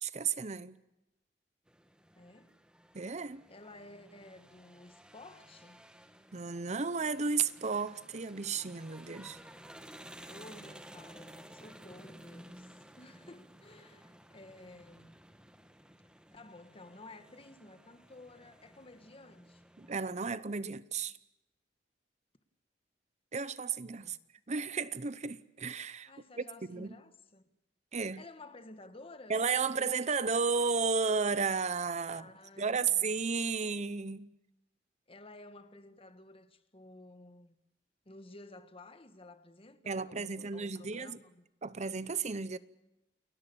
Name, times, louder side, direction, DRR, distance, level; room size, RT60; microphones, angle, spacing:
voice 1, 0.0-0.8 2.9-3.4 6.3-9.4 19.8-21.2 23.3-24.2 24.5-26.1 26.4-27.0 27.9-28.2 29.3-32.3 32.6-34.3 39.9-41.2 41.6-42.6, right 5 dB, 40° right, 0.8 m, -33 dB
sound 1, 1.7-20.0, right 1 dB, 5° right, 1.6 m, -55 dB
voice 2, 2.1-2.5 3.5-5.8 10.3-15.1 16.3-19.6 24.0-24.2 26.1-27.4 28.2-29.4 32.1-33.1 35.1-37.5 38.0-41.4, left 2 dB, 35° left, 1.5 m, -53 dB
29.5 x 21.0 x 7.0 m
head